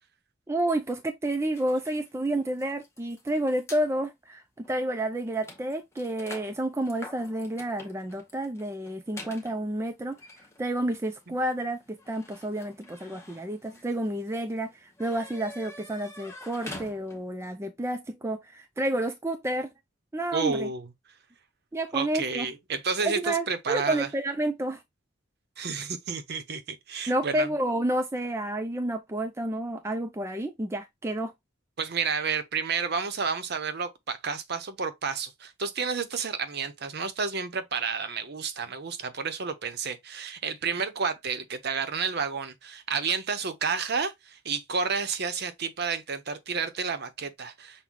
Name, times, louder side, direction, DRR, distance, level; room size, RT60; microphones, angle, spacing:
voice 1, 0.5-10.2 10.6-19.7 20.1-20.7 21.7-22.5 23.0-24.8 27.1-31.3, right 1 dB, 15° right, 0.4 m, -30 dB
sound 1, 1.5-3.9 4.6-4.7 5.0-17.4, left 2 dB, 15° left, 0.8 m, -47 dB
voice 2, 20.3-20.9 21.9-24.1 25.6-27.5 31.8-47.8, right 5 dB, 50° right, 0.7 m, -31 dB
6.2 x 2.2 x 3.7 m
head